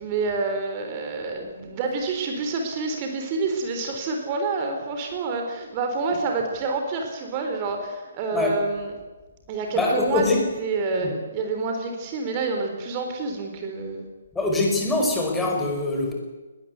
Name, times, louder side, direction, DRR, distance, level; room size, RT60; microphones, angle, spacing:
voice 1, 0.0-8.9 9.5-10.3 10.6-14.1, right 3 dB, 30° right, 4 dB, 3.8 m, -28 dB
voice 2, 9.7-10.4 11.0-11.1 14.3-16.1, left 2 dB, 5° left, 0 dB, 5.2 m, -23 dB
20.5 x 19.0 x 8.2 m, 1.3 s
figure-of-eight pair, 135°, 0 cm